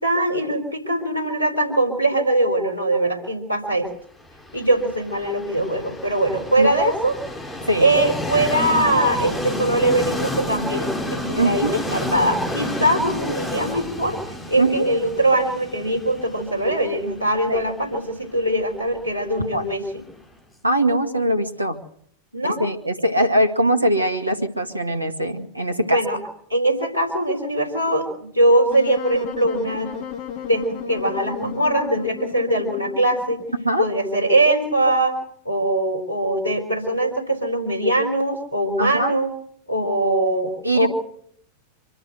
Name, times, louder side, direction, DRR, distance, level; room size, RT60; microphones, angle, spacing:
voice 1, 0.0-3.9 4.5-7.1 7.8-14.2 14.5-19.8 22.3-22.6 25.9-26.2 26.5-29.9 30.5-33.4 33.8-35.2 35.4-39.3 39.7-40.9, right 1 dB, 80° left, 4 dB, 4.1 m, -21 dB
Train, 4.4-20.2, left 1 dB, 10° left, 4.0 m, -30 dB
voice 2, 11.4-11.8 14.6-14.9 17.5-17.6 19.5-19.6 20.6-21.8 22.4-26.0 33.6-33.9 38.8-39.1 40.6-40.9, right 1 dB, 85° right, 8 dB, 2.0 m, -21 dB
Wind instrument woodwind instrument, 28.7-33.8, left 8 dB, 45° left, 1.9 m, -34 dB
25.0 x 13.0 x 8.0 m, 0.68 s
figure-of-eight pair, 90°, 0 cm